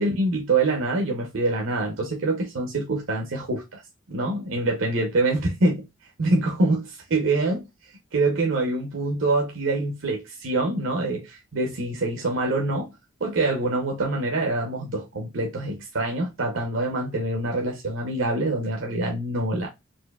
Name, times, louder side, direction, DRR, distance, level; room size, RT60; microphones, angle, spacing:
voice 1, 0.0-3.8 4.1-5.9 6.2-12.9 13.2-19.7, right 2 dB, 75° right, 0.7 m, -25 dB
4.3 x 2.6 x 2.2 m
head